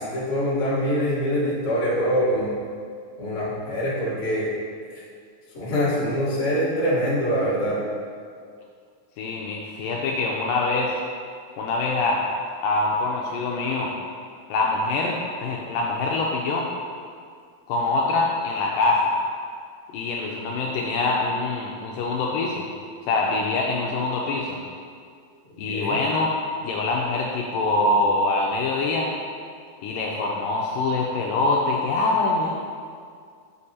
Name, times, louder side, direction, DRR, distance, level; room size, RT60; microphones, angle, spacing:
voice 1, 0.0-2.5 3.2-4.5 4.9-5.0 5.5-7.8 25.6-26.0, equal, 25° left, -9 dB, 1.4 m, -24 dB
voice 2, 9.2-10.9 11.6-12.2 12.6-13.9 14.5-16.7 17.7-19.1 19.9-22.7 23.1-24.6 25.6-26.3 26.6-29.1 29.8-32.5, left 3 dB, 80° left, -2 dB, 2.1 m, -24 dB
8.5 x 5.2 x 4.2 m, 2.2 s
omnidirectional pair, 4.3 m